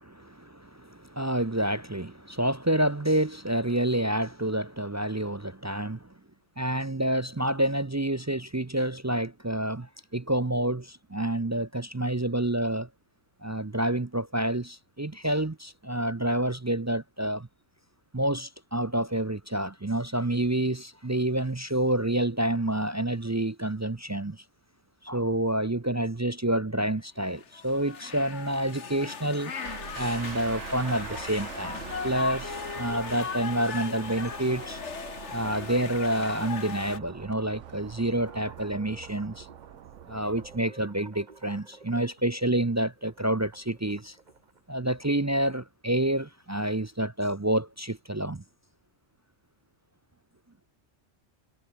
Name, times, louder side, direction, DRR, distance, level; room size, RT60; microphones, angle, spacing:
voice 1, 0.1-6.1 6.6-12.9 13.4-17.5 18.1-24.4 25.0-29.5 30.0-31.8 32.0-34.8 35.3-39.5 40.1-44.2 44.7-48.4, right 1 dB, 20° right, 0.4 m, -28 dB
sound 1, 27.4-37.0, left 6 dB, 75° left, 1.8 m, -38 dB
sound 2, 29.6-40.6, right 10 dB, 85° right, 1.1 m, -44 dB
sound 3, 35.6-45.2, right 4 dB, 40° right, 1.7 m, -53 dB
omnidirectional pair, 1.2 m